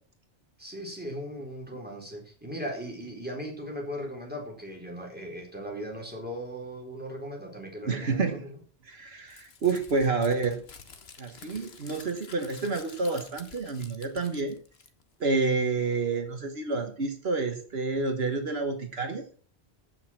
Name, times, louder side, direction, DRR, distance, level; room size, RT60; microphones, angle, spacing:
voice 1, 0.6-8.6, equal, 10° right, 0 dB, 4.1 m, -38 dB
voice 2, 7.8-8.5 8.8-10.6 11.2-14.6 15.2-19.2, right 4 dB, 70° right, 6 dB, 1.6 m, -29 dB
Crumpling crinkling, 9.3-15.2, left 5 dB, 70° left, 1.5 m, -50 dB
14.5 x 6.4 x 5.9 m, 0.42 s
omnidirectional pair, 1.1 m